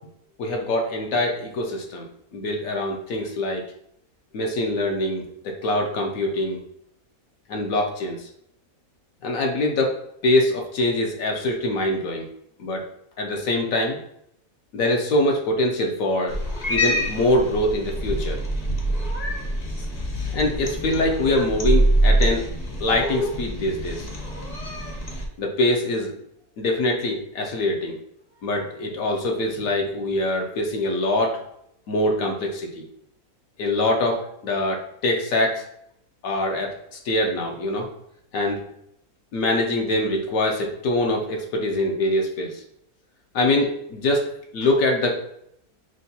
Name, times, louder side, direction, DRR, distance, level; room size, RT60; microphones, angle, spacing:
voice 1, 0.4-2.1 2.3-3.7 4.3-6.6 7.5-8.2 9.2-12.3 12.6-12.8 13.2-14.0 14.7-16.4 16.7-18.4 20.3-22.5 22.8-24.1 25.4-26.1 26.6-28.0 28.4-31.4 31.9-32.8 33.6-35.6 36.2-37.9 38.3-38.6 39.3-42.5 43.3-45.2, left 1 dB, 75° left, 1 dB, 1.0 m, -24 dB
Cat, 16.3-25.3, right 1 dB, 40° left, 0.6 m, -25 dB
6.1 x 2.2 x 2.7 m, 0.74 s
omnidirectional pair, 1.5 m